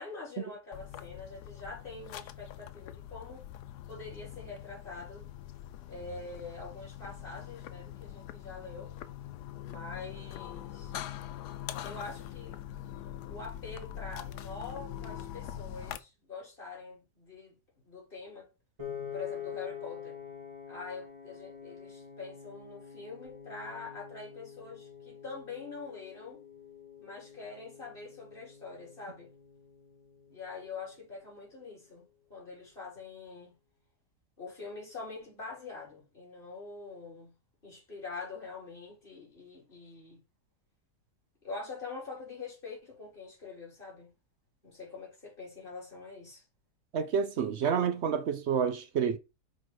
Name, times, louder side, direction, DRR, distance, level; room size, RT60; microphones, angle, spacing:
voice 1, 0.0-3.5 3.9-5.3 5.9-8.9 9.6-10.9 11.8-12.6 13.2-17.6 17.9-18.5 19.1-20.2 20.7-26.4 27.0-29.3 30.3-33.5 34.4-37.3 37.6-40.2 41.4-44.1 44.6-46.4, left 4 dB, 30° left, 3.8 m, -44 dB
sound 1, 0.7-16.0, left 11 dB, 85° left, 1.2 m, -43 dB
Piano, 18.8-31.0, left 8 dB, 20° right, 2.0 m, -46 dB
voice 2, 46.9-49.2, right 7 dB, 65° right, 0.7 m, -29 dB
5.8 x 4.4 x 4.6 m
omnidirectional pair, 1.7 m